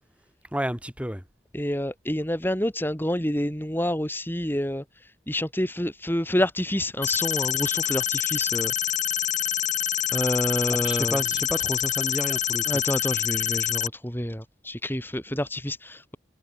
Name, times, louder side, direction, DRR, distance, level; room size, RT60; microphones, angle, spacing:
voice 1, 0.5-1.2 10.7-12.6, equal, 5° right, 7.0 m, -30 dB
voice 2, 1.5-8.7 10.1-11.2 12.7-16.2, left 1 dB, 10° left, 4.2 m, -28 dB
sound 1, 7.0-13.9, left 10 dB, 40° left, 6.8 m, -26 dB
head